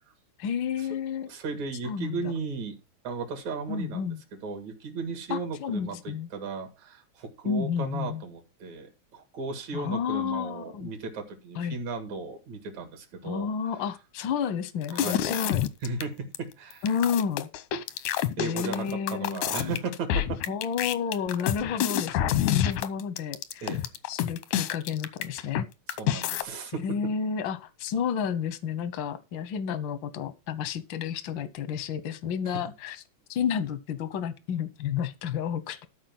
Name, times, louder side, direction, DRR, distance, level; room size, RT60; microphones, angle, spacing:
voice 1, 0.4-1.3 1.8-2.3 3.7-4.2 5.3-6.3 7.4-8.2 9.7-10.9 11.5-11.8 13.2-15.6 16.8-17.5 18.4-19.4 20.5-23.7 24.1-25.7 26.8-33.0 33.3-35.9, left 7 dB, 70° left, 1.1 m, -31 dB
voice 2, 1.3-2.8 3.0-4.1 4.4-13.5 14.9-15.2 15.8-16.8 18.4-20.4 23.6-23.9 26.0-26.8, right 4 dB, 70° right, 3.2 m, -35 dB
sound 1, 14.8-16.0 16.4-16.5 16.7-25.6 25.9-26.4, left 11 dB, 90° left, 2.3 m, -28 dB
13.0 x 4.7 x 6.0 m
omnidirectional pair, 3.4 m